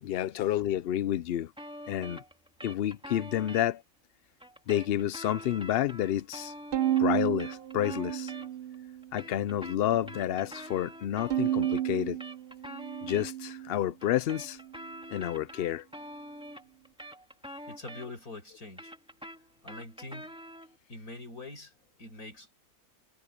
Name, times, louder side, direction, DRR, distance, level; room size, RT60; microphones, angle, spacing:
voice 1, 0.0-1.5 1.9-2.2 2.6-3.8 4.7-6.5 7.0-8.3 9.1-12.2 13.0-14.6 15.1-15.8, left 12 dB, 65° left, 0.6 m, -30 dB
sound 1, 1.6-3.7 4.4-8.7 9.0-13.3 14.0-18.3 18.6-20.8, equal, 5° right, 2.5 m, -45 dB
Bowed string instrument, 6.7-9.1 9.5-10.3 11.3-13.8, right 12 dB, 50° right, 0.7 m, -32 dB
voice 2, 17.7-18.9 19.6-20.3 20.9-21.7 22.0-22.5, left 2 dB, 85° left, 5.5 m, -44 dB
omnidirectional pair, 1.5 m